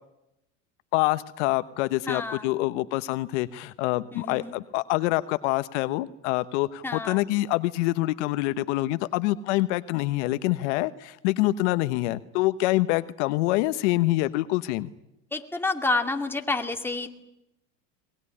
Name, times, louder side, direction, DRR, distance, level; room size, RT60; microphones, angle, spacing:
voice 1, 0.9-14.9, left 18 dB, 65° left, 13 dB, 1.1 m, -26 dB
voice 2, 2.1-2.5 4.1-4.5 6.8-7.2 15.3-17.1, left 3 dB, 5° left, 4 dB, 2.4 m, -29 dB
22.5 x 20.5 x 9.9 m, 0.90 s
supercardioid pair, 110°, 37 cm